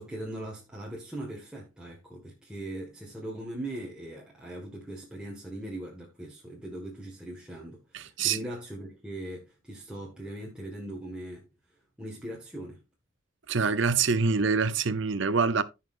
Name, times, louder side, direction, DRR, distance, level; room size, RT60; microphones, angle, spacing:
voice 1, 0.0-11.4 12.0-12.8, right 1 dB, 5° right, 1.7 m, -40 dB
voice 2, 7.9-8.4 13.5-15.6, right 5 dB, 65° right, 0.7 m, -25 dB
15.5 x 5.8 x 2.5 m
head